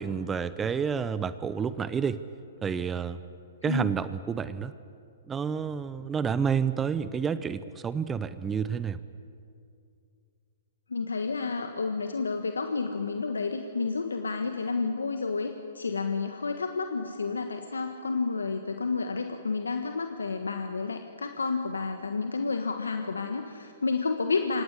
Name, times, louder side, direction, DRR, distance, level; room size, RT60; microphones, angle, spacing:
voice 1, 0.0-2.2 2.6-3.2 3.6-4.7 5.3-9.0, right 6 dB, 15° right, 14 dB, 0.8 m, -29 dB
voice 2, 10.9-24.6, left 4 dB, 85° left, 6 dB, 1.5 m, -30 dB
25.0 x 18.5 x 9.8 m, 2.5 s
hypercardioid pair, 120°, 0 cm